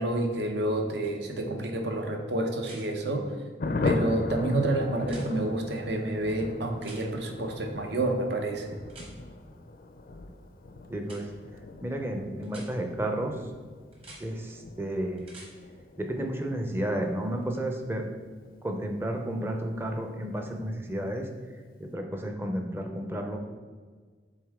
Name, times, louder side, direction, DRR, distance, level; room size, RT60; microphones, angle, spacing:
voice 1, 0.0-3.3 3.8-8.7, right 1 dB, 70° right, 4 dB, 0.8 m, -29 dB
sound 1, 1.0-1.1 2.6-2.8 5.0-5.3 6.8-7.0 8.9-9.1 11.0-11.2 12.4-12.7 13.9-14.2 15.2-15.5 17.5-17.6, right 2 dB, 30° right, 1.2 m, -48 dB
Thunder, 3.6-19.7 20.0-20.1 20.4-20.5 20.8-21.2, left 2 dB, 50° left, 0.4 m, -38 dB
voice 2, 10.9-11.3 11.8-13.5 14.2-15.3 16.0-18.0 18.6-23.4, right 1 dB, 15° right, 3 dB, 0.5 m, -32 dB
7.8 x 3.6 x 3.6 m, 1.6 s
head